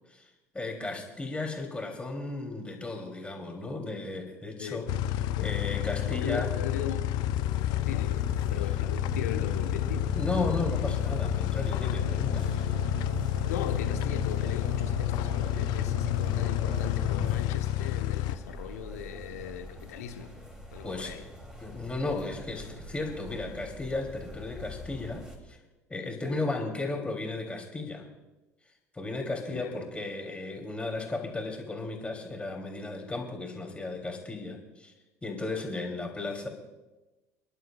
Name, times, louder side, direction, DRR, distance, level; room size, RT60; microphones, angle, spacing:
voice 1, 0.2-4.9 5.4-6.5 9.3-9.4 10.1-12.5 20.8-21.1 21.6-25.6 25.9-28.1 28.9-34.9 35.2-36.5, left 2 dB, 15° left, 1 dB, 3.3 m, -35 dB
sound 1, 4.9-18.4, left 16 dB, 55° left, 0.4 m, -30 dB
sound 2, 4.9-17.4, left 4 dB, 75° right, 3.1 m, -36 dB
voice 2, 6.1-7.1 7.8-8.2 8.5-10.1 13.5-20.3 20.7-21.2 29.5-29.7, left 9 dB, 75° left, 6 dB, 1.3 m, -38 dB
sound 3, 7.3-25.4, left 1 dB, 5° right, 3.2 m, -45 dB
28.5 x 11.5 x 2.5 m, 1.1 s
figure-of-eight pair, 65°, 9 cm